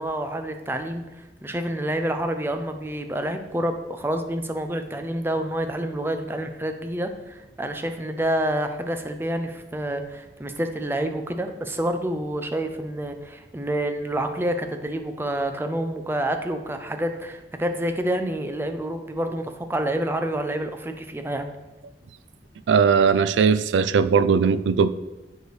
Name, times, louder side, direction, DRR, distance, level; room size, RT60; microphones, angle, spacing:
voice 1, 0.0-21.5, right 1 dB, 15° right, 7 dB, 0.4 m, -28 dB
voice 2, 22.7-24.9, right 6 dB, 90° right, 14 dB, 0.4 m, -19 dB
9.2 x 4.8 x 3.2 m, 1.1 s
head